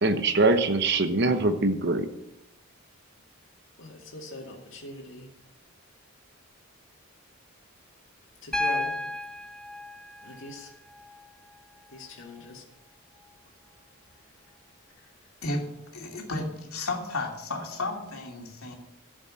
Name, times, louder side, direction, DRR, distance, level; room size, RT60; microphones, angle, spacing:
voice 1, 0.0-2.1, right 2 dB, 50° right, 8 dB, 0.9 m, -23 dB
voice 2, 3.8-5.3 8.4-8.9 10.2-10.7 11.9-12.6, left 2 dB, 60° left, -3 dB, 2.4 m, -41 dB
Piano, 8.5-12.5 14.1-14.2, left 2 dB, 5° left, 0.7 m, -34 dB
voice 3, 15.4-18.7, left 2 dB, 80° left, 1 dB, 2.6 m, -33 dB
12.5 x 7.4 x 7.6 m, 0.88 s
head